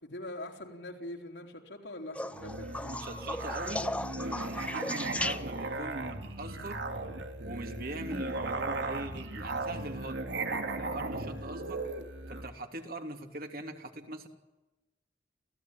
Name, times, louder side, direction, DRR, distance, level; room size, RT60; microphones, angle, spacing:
voice 1, 0.0-2.9, left 1 dB, 75° left, 2 dB, 4.2 m, -43 dB
sound 1, 2.1-5.8 8.0-8.5 10.1-10.2, left 1 dB, 5° left, 0.8 m, -37 dB
Musical instrument, 2.3-12.5, right 2 dB, 85° right, 3.0 m, -37 dB
voice 2, 2.8-6.8 7.4-11.8 12.3-14.3, right 1 dB, 55° right, 4 dB, 3.1 m, -41 dB
28.5 x 17.0 x 9.4 m, 1.1 s
head